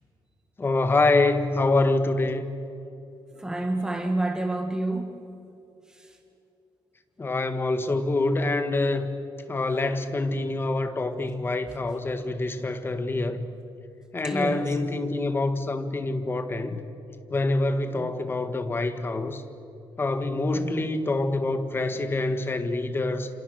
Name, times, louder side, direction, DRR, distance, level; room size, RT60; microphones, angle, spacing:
voice 1, 0.6-2.4 7.2-9.1 9.5-13.5 14.1-16.8 17.3-19.4 20.0-23.3, left 2 dB, 25° left, 1.7 m, -26 dB
voice 2, 3.3-5.2 5.9-6.2 11.7-11.8 14.2-14.8 18.0-18.2 20.5-20.8, right 2 dB, 5° right, 1.7 m, -29 dB
29.0 x 27.5 x 6.5 m
cardioid pair, 145°, 9 cm